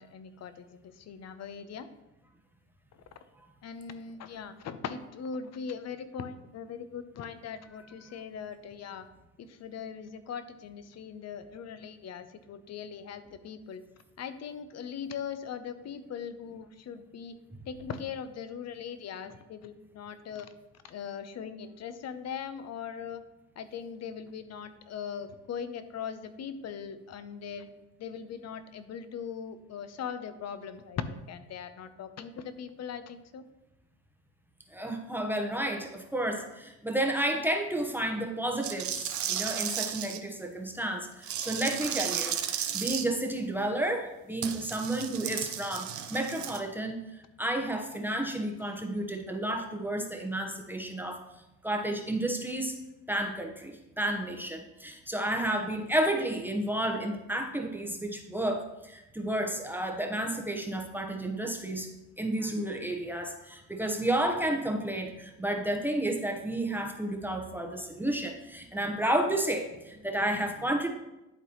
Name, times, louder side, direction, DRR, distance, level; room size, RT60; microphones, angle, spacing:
voice 1, 0.0-1.9 3.6-9.1 9.4-13.8 14.2-17.3 17.7-20.5 20.9-23.2 23.6-27.7 28.0-33.4 49.5-49.6, left 7 dB, 45° left, 12 dB, 0.7 m, -40 dB
voice 2, 34.7-51.2 51.6-52.8 53.1-61.9 62.2-70.9, right 1 dB, 5° right, 2 dB, 0.9 m, -31 dB
sound 1, 38.6-40.2 41.2-43.0 44.4-46.6, right 9 dB, 50° right, 0.8 m, -34 dB
11.0 x 3.9 x 3.0 m, 0.96 s
supercardioid pair, 85°, 38 cm